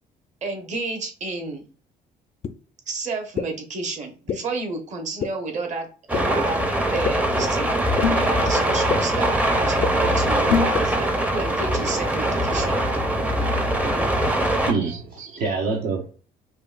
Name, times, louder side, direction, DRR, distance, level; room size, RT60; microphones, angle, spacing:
voice 1, 0.4-1.7 2.9-6.7 6.9-7.7 8.1-12.8 14.8-15.4, right 3 dB, 45° right, 1.1 m, -31 dB
sound 1, 2.4-2.5 3.4-3.5 4.3-4.4 5.2-5.3 6.1-6.2 7.0-7.1 8.0-8.1 8.9-9.0 9.8-9.9 10.7-10.8, left 7 dB, 35° left, 0.4 m, -24 dB
sound 2, 6.1-14.7, right 1 dB, 10° right, 0.6 m, -22 dB
sound 3, 8.0-8.4 10.5-10.8, left 8 dB, 85° left, 0.6 m, -23 dB
voice 2, 14.7-16.1, right 4 dB, 60° right, 0.7 m, -25 dB
5.5 x 2.2 x 2.4 m
cardioid pair, 110°, 17 cm